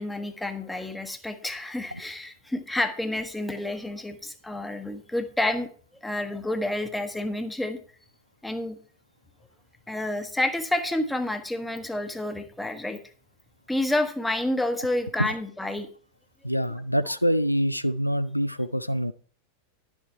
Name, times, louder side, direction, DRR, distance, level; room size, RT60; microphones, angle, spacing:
voice 1, 0.0-5.7 6.0-7.8 8.4-8.8 9.9-13.0 13.7-15.9, left 1 dB, 5° left, 8 dB, 1.2 m, -29 dB
voice 2, 16.4-19.1, equal, 90° left, 13 dB, 0.5 m, -25 dB
11.0 x 7.3 x 4.5 m, 0.43 s
figure-of-eight pair, 90°, 0 cm